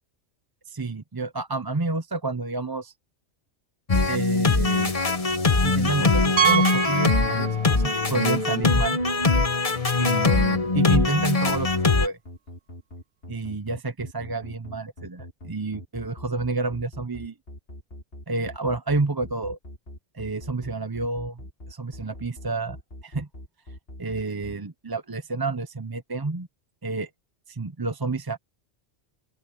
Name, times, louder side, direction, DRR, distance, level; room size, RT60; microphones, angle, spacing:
voice 1, 0.7-2.9 4.1-4.9 5.6-9.0 10.0-11.7 12.0-12.2 13.3-17.3 18.3-19.6 20.1-21.4 21.7-22.8 23.0-23.3 24.0-26.5 26.8-27.1 27.5-28.4, right 3 dB, 25° right, 0.7 m, -29 dB
sound 1, 3.9-12.1, left 3 dB, 30° left, 1.3 m, -22 dB
Piano, 6.4-8.0 8.2-8.4 9.0-9.1 9.3-9.4 11.5-11.6, right 8 dB, 70° right, 1.3 m, -25 dB
sound 2, 9.0-24.5, left 1 dB, 55° left, 5.5 m, -42 dB
open air
omnidirectional pair, 1.2 m